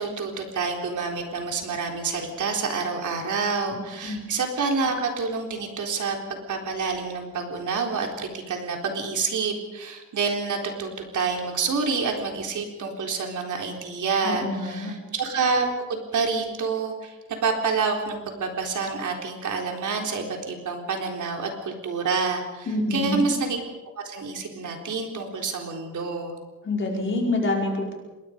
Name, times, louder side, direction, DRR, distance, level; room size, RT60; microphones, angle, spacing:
voice 1, 0.0-6.2 6.5-17.2 17.4-23.6 24.0-26.4, right 4 dB, 75° right, 2 dB, 4.1 m, -28 dB
voice 2, 14.2-14.9 22.7-23.2 26.6-27.9, left 2 dB, 40° left, -1 dB, 5.4 m, -26 dB
27.0 x 22.0 x 5.3 m, 1.2 s
wide cardioid pair, 180°, 30 cm